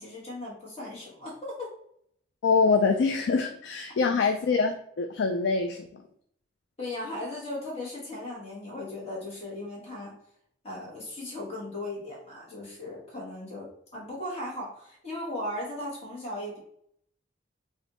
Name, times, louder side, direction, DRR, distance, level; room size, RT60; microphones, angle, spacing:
voice 1, 0.0-1.7 4.2-4.3 6.8-10.1 10.6-16.6, left 1 dB, 35° left, -5 dB, 1.4 m, -37 dB
voice 2, 2.4-5.8, left 4 dB, 65° left, 5 dB, 0.3 m, -24 dB
3.4 x 2.5 x 3.8 m, 0.67 s
head